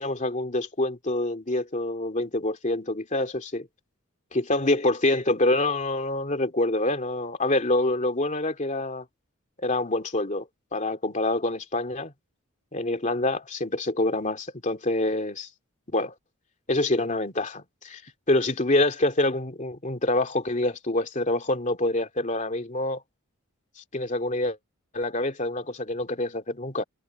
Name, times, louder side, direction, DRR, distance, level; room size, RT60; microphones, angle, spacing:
voice 1, 0.0-3.7 4.3-9.1 9.6-12.1 12.7-15.5 15.9-16.1 16.7-18.0 18.3-23.0 23.9-24.6 24.9-26.8, left 2 dB, 35° left, 2.7 m, -26 dB
head